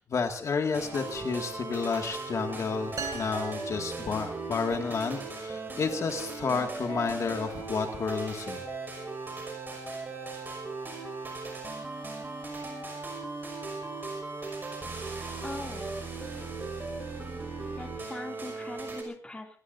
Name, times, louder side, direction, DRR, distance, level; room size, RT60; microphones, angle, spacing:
voice 1, 0.0-8.6, left 5 dB, 55° left, 4 dB, 2.2 m, -31 dB
sound 1, 0.7-19.0, right 3 dB, 30° right, 5.8 m, -38 dB
sound 2, 3.0-4.7, right 5 dB, 60° right, 2.4 m, -41 dB
voice 2, 15.0-15.9 17.8-19.6, left 2 dB, 15° left, 3 dB, 2.8 m, -41 dB
25.5 x 19.0 x 2.7 m, 0.41 s
wide cardioid pair, 160°, 6 cm